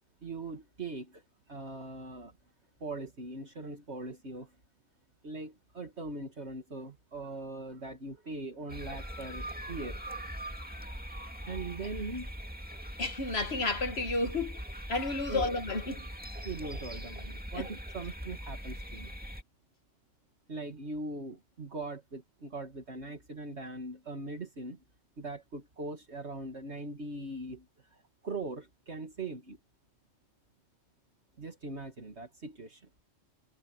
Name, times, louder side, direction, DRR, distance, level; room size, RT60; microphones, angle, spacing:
voice 1, 0.2-2.3 2.8-4.5 5.2-10.2 11.4-12.3 15.3-15.5 16.4-19.1 20.5-24.8 25.2-29.6 31.4-32.9, right 2 dB, 55° right, 2.6 m, -41 dB
sound 1, 8.7-19.4, equal, 5° right, 2.2 m, -41 dB
voice 2, 13.0-14.6 14.9-16.1 17.5-17.7, left 3 dB, 50° left, 1.8 m, -31 dB
omnidirectional pair, 1.3 m